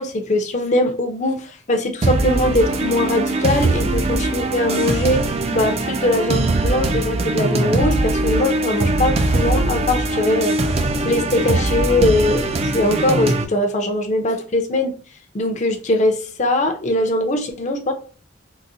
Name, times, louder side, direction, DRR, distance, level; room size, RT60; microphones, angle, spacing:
voice 1, 0.0-5.2 5.5-10.6 11.0-14.9 15.3-17.9, left 1 dB, 40° left, 0.6 m, -21 dB
sound 1, 2.0-13.4, right 2 dB, 35° right, 0.4 m, -21 dB
3.9 x 2.1 x 2.6 m
head